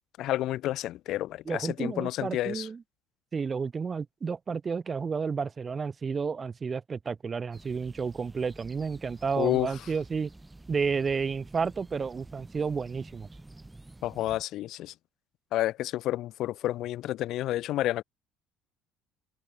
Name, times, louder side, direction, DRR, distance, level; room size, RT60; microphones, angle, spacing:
voice 1, 0.2-2.7 9.4-9.7 14.0-14.9 15.5-18.0, left 14 dB, 65° left, 0.6 m, -30 dB
voice 2, 1.5-2.8 3.3-10.3 10.7-13.3, right 5 dB, 35° right, 1.5 m, -31 dB
sound 1, 7.5-14.4, right 2 dB, 10° right, 2.9 m, -50 dB
supercardioid pair, 80°, 0 cm